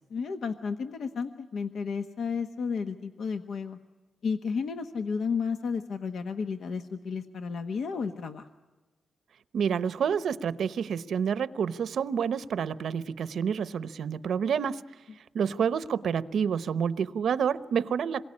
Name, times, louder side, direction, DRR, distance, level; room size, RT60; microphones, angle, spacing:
voice 1, 0.1-3.8 4.2-8.5 15.6-15.7, left 5 dB, 80° left, 7 dB, 1.2 m, -32 dB
voice 2, 9.5-14.9 15.3-18.2, right 7 dB, 85° right, 15 dB, 0.9 m, -28 dB
27.0 x 22.5 x 9.8 m, 1.2 s
wide cardioid pair, 150°, 0 cm